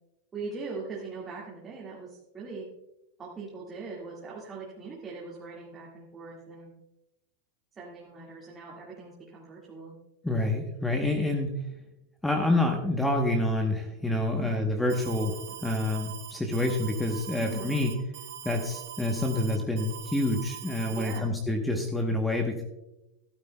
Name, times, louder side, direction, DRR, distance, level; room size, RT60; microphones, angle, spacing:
voice 1, 0.3-2.7 3.2-6.7 7.8-10.0 14.4-14.6 17.4-17.7 20.9-21.3, right 4 dB, 20° right, -5 dB, 1.9 m, -41 dB
voice 2, 10.2-11.6 12.2-15.3 15.6-17.9 18.4-22.6, left 1 dB, 5° left, 3 dB, 1.0 m, -27 dB
Alarm, 14.9-21.2, right 10 dB, 60° right, 2.0 m, -42 dB
13.0 x 12.0 x 2.3 m, 0.93 s
supercardioid pair, 135°, 0 cm